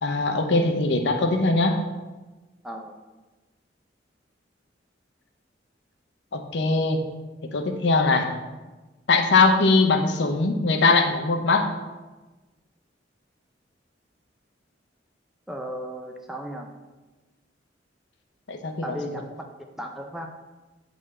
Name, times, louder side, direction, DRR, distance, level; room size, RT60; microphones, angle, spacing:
voice 1, 0.0-1.8 6.3-7.0 7.5-8.3 9.1-11.7 18.5-19.0, left 3 dB, 70° left, 5 dB, 0.6 m, -21 dB
voice 2, 15.5-16.7 18.8-19.3 19.8-20.3, equal, ahead, 2 dB, 0.4 m, -35 dB
8.1 x 3.9 x 3.2 m, 1.2 s
head